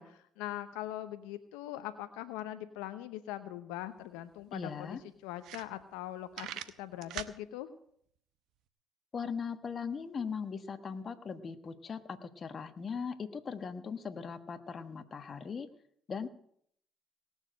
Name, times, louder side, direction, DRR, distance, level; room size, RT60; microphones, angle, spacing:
voice 1, 0.0-5.0 5.2-6.5 6.8-7.7, left 13 dB, 85° left, 10 dB, 0.8 m, -41 dB
sound 1, 4.0-4.1 4.4-4.5 5.0-5.1 5.4-6.0 6.3-7.4, right 11 dB, 75° right, 0.8 m, -41 dB
voice 2, 4.5-5.0 9.1-15.7 16.1-16.3, left 6 dB, 45° left, 9 dB, 1.4 m, -39 dB
18.5 x 7.3 x 7.7 m, 0.65 s
supercardioid pair, 65°, 0 cm